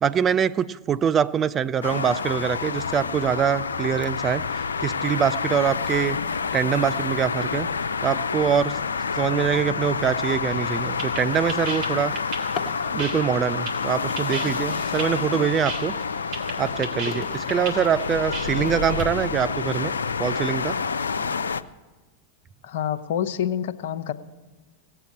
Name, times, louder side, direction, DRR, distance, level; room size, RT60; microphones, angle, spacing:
voice 1, 0.0-4.4 4.8-6.2 6.5-7.7 8.0-8.8 9.2-12.1 12.9-16.0 16.6-19.9 20.2-20.8, right 8 dB, 30° right, 15 dB, 0.5 m, -24 dB
sound 1, 1.8-21.6, left 5 dB, 90° left, 0.5 m, -28 dB
sound 2, 10.5-19.1, right 1 dB, 50° right, 3.0 m, -35 dB
Drawer open or close, 16.4-18.5 19.1-19.2 19.7-19.8 20.2-20.6, left 7 dB, 40° left, 1.3 m, -41 dB
voice 2, 22.6-24.1, left 10 dB, 65° left, 12 dB, 0.8 m, -27 dB
17.5 x 7.9 x 8.4 m, 1.3 s
hypercardioid pair, 100°, 0 cm